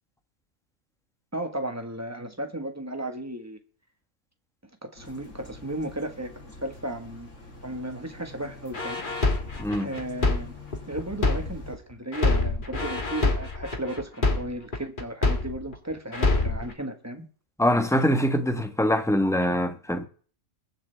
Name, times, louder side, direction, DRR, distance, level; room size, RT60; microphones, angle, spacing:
voice 1, 1.3-3.6 4.8-7.3 7.6-9.0 9.8-10.5 10.8-17.2, right 1 dB, 15° right, 1.4 m, -34 dB
sound 1, 5.0-11.8, left 3 dB, 80° left, 3.1 m, -45 dB
sound 2, 8.7-11.7 12.1-15.7 16.1-16.7, left 2 dB, 40° left, 1.6 m, -25 dB
voice 2, 9.6-9.9 17.6-20.1, equal, 5° left, 1.1 m, -23 dB
22.0 x 7.6 x 3.4 m
omnidirectional pair, 1.3 m